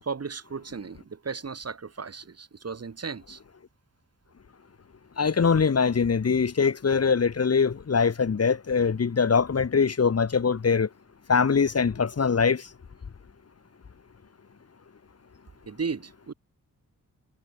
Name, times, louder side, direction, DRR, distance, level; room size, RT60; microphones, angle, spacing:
voice 1, 0.0-3.4 15.7-16.3, right 5 dB, 45° right, 4.0 m, -35 dB
voice 2, 5.2-10.9 11.3-12.7, left 5 dB, 45° left, 1.8 m, -23 dB
wide cardioid pair, 160°, 34 cm